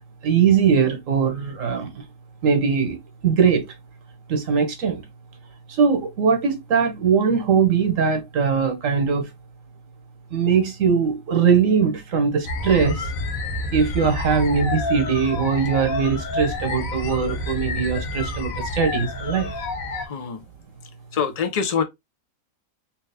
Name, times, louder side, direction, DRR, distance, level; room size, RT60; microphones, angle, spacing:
voice 1, 0.2-2.0 2.4-3.7 4.3-5.0 5.7-9.3 10.3-13.1 13.7-19.5, right 6 dB, 65° right, 1.3 m, -21 dB
sound 1, 12.4-20.1, left 2 dB, 75° left, 1.3 m, -29 dB
voice 2, 20.1-20.4 21.1-21.8, left 7 dB, 50° left, 0.4 m, -24 dB
3.2 x 3.0 x 3.3 m
omnidirectional pair, 1.5 m